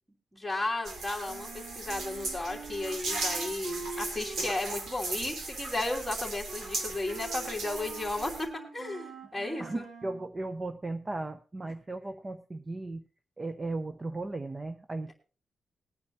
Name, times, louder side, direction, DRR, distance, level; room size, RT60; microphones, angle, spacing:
voice 1, 0.3-9.8, left 2 dB, ahead, -4 dB, 3.1 m, -34 dB
sound 1, 0.8-8.4, right 2 dB, 70° right, 2.6 m, -37 dB
Wind instrument woodwind instrument, 1.3-10.3, right 4 dB, 90° right, 2.6 m, -45 dB
voice 2, 9.6-13.0 13.4-15.1, right 2 dB, 25° right, 9 dB, 0.6 m, -36 dB
21.0 x 9.5 x 2.8 m, 0.37 s
wide cardioid pair, 120°, 0 cm